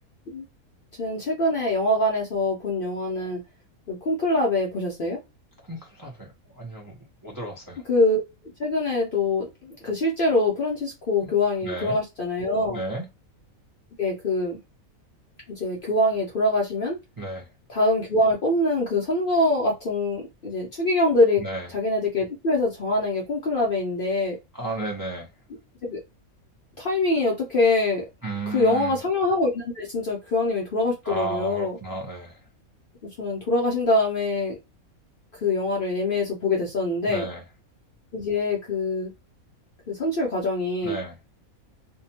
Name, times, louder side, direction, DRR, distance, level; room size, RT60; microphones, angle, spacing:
voice 1, 1.0-3.4 3.9-5.2 7.9-8.2 8.6-12.8 14.0-14.6 15.5-17.0 17.7-21.4 21.7-24.4 25.8-26.0 26.8-28.1 28.5-31.8 33.2-34.6 35.4-37.3 38.1-39.1 39.9-41.0, left 2 dB, 60° left, 0.6 m, -24 dB
voice 2, 5.7-6.3 6.6-6.9 7.2-7.8 11.2-11.3 11.6-12.0 12.7-13.1 17.2-17.5 21.4-21.7 24.5-25.3 28.2-29.0 31.0-32.4 37.1-37.4 40.8-41.2, right 2 dB, 35° right, 0.3 m, -33 dB
2.7 x 2.1 x 2.8 m
omnidirectional pair, 1.5 m